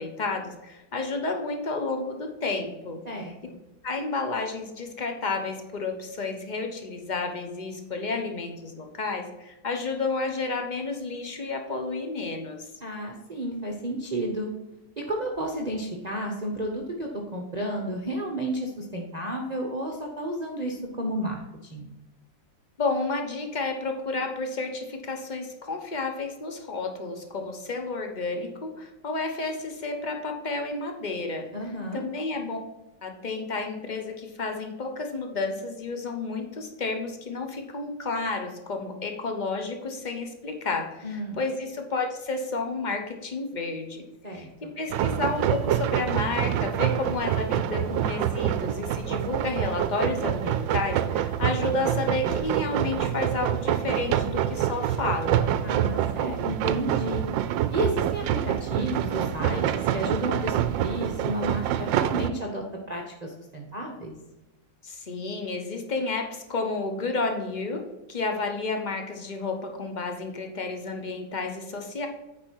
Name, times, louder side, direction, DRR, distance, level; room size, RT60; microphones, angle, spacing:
voice 1, 0.0-3.3 3.8-12.6 22.8-31.5 31.9-32.6 33.0-44.0 44.3-55.5 64.8-72.1, left 3 dB, 35° left, 4 dB, 0.7 m, -31 dB
voice 2, 3.0-3.6 12.8-14.5 15.0-21.4 21.7-21.9 31.5-32.0 41.0-41.4 44.2-44.7 55.6-57.2 57.7-64.1, right 1 dB, 35° right, 0 dB, 0.7 m, -32 dB
sound 1, 44.9-62.3, right 11 dB, 80° right, 1.3 m, -26 dB
8.9 x 5.1 x 4.5 m, 1.0 s
omnidirectional pair, 2.1 m